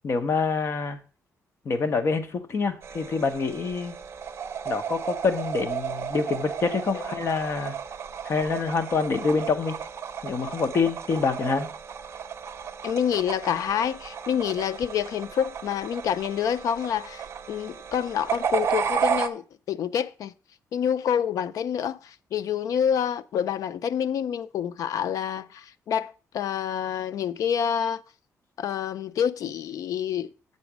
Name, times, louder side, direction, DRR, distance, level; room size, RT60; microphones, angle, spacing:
voice 1, 0.0-1.0 1.6-4.0 4.6-7.7 8.2-9.8 10.2-11.7, left 4 dB, 45° left, 1.0 m, -26 dB
sound 1, 2.8-19.3, right 7 dB, 45° right, 0.6 m, -33 dB
voice 2, 12.8-20.3 20.7-28.0 28.6-30.3, left 8 dB, 70° left, 0.4 m, -27 dB
7.8 x 4.2 x 6.2 m
cardioid pair, 140°, 6 cm